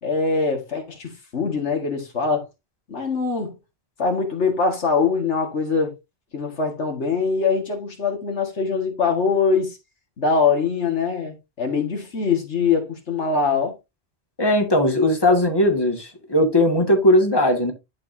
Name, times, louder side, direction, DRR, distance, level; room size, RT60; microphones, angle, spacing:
voice 1, 0.0-2.5 2.9-3.6 4.0-5.9 6.3-9.8 10.2-13.8, left 5 dB, 85° left, 2.1 m, -23 dB
voice 2, 14.4-17.7, left 1 dB, 20° left, 2.0 m, -18 dB
11.5 x 5.3 x 2.7 m
omnidirectional pair, 1.1 m